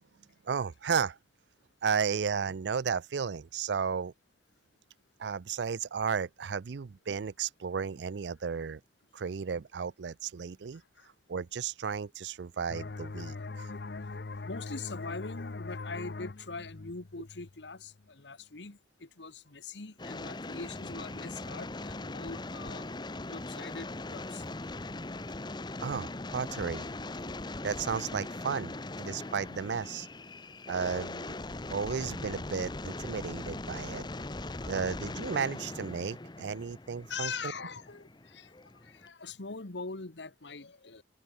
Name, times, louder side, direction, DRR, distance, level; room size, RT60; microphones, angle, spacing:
voice 1, 0.5-1.2 1.8-4.1 5.2-8.8 9.1-10.8 11.3-13.7 25.8-26.9 27.6-30.1 30.7-31.3 31.7-34.1 34.7-37.3, right 6 dB, 75° right, 0.5 m, -33 dB
voice 2, 10.7-11.1 14.4-22.9 23.2-24.4 34.5-34.8 37.1-41.0, left 4 dB, 85° left, 1.5 m, -42 dB
sound 1, 12.7-18.1, left 3 dB, 65° left, 0.7 m, -41 dB
sound 2, 20.0-39.1, left 2 dB, 25° left, 0.8 m, -40 dB
head